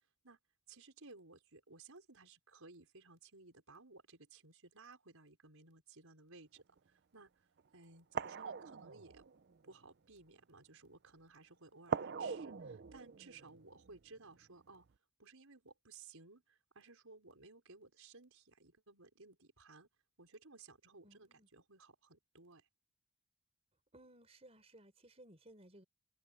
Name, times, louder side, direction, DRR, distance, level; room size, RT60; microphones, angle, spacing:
voice 1, 0.7-7.5 7.7-9.3 9.6-14.9 15.2-19.9 20.2-22.7, right 3 dB, 75° right, 4.9 m, -59 dB
sound 1, 6.6-6.8 7.6-7.7 8.1-9.8 11.9-14.4 14.7-14.9, right 5 dB, 50° right, 0.5 m, -42 dB
voice 2, 8.3-8.8 21.0-21.5 23.9-25.8, right 1 dB, 30° right, 4.6 m, -61 dB
head